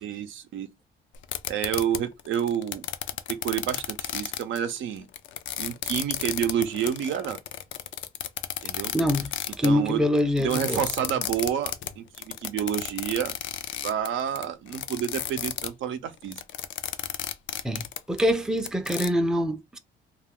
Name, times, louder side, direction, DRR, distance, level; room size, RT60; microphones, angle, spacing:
voice 1, 0.0-0.7 1.5-2.8 3.3-5.1 5.6-7.4 8.6-8.9 9.6-10.1 10.4-13.3 13.8-16.4, right 9 dB, 75° right, 0.5 m, -29 dB
sound 1, 1.1-15.7 16.2-19.1, left 11 dB, 70° left, 0.4 m, -32 dB
voice 2, 8.9-9.3 9.6-10.8 17.6-19.8, equal, 5° right, 0.4 m, -25 dB
2.3 x 2.3 x 3.5 m
cardioid pair, 90°, 20 cm